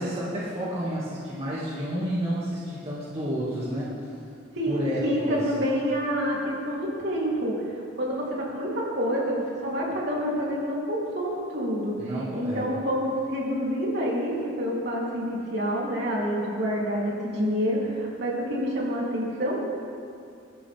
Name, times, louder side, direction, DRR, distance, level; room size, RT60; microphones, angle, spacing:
voice 1, 0.0-4.0 4.7-5.5 12.0-12.7, equal, 30° right, -8 dB, 2.3 m, -30 dB
voice 2, 4.5-7.5 8.0-11.9 12.4-19.6, equal, 55° right, -5 dB, 3.5 m, -27 dB
22.5 x 12.5 x 3.6 m, 2.5 s
head